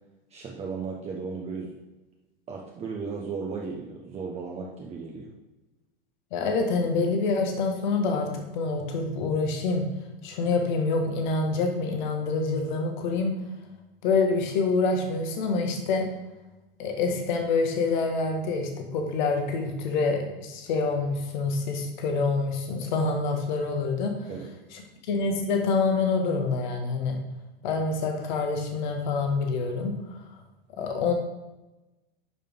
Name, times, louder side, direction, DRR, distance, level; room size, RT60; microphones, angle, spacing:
voice 1, 0.3-1.7 2.5-5.3 24.3-24.5, right 5 dB, 20° right, -2 dB, 1.0 m, -35 dB
voice 2, 6.3-9.8 10.2-13.3 14.0-16.1 16.8-24.1 25.1-27.2 27.6-29.9 30.8-31.1, left 4 dB, 50° left, 3 dB, 1.6 m, -26 dB
11.0 x 5.2 x 3.8 m, 1.0 s
figure-of-eight pair, 90°, 29 cm